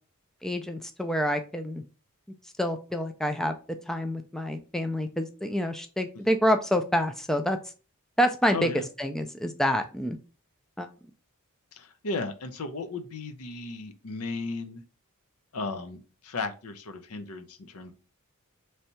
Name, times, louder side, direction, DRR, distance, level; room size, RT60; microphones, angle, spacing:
voice 1, 0.4-1.8 2.6-3.6 3.9-7.6 8.2-8.7 9.0-10.2 10.8-10.9, equal, ahead, 6 dB, 0.3 m, -27 dB
voice 2, 8.5-8.8 11.7-14.8 15.5-17.9, left 3 dB, 75° left, 9 dB, 0.6 m, -35 dB
3.2 x 2.7 x 4.2 m, 0.35 s
head